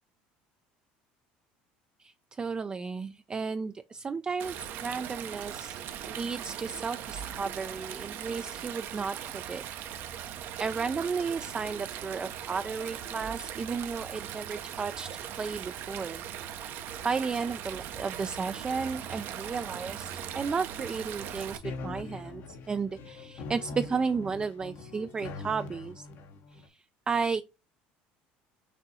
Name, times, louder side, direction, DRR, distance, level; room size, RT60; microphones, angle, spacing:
voice 1, 2.0-5.8 6.1-9.6 10.6-16.2 17.0-26.1 26.5-27.4, right 5 dB, 25° right, 0.3 m, -33 dB
Stream, 4.4-21.6, right 9 dB, 60° right, 0.6 m, -39 dB
sound 1, 21.6-26.7, left 3 dB, 60° left, 0.9 m, -42 dB
6.1 x 2.6 x 2.7 m
supercardioid pair, 95°, 4 cm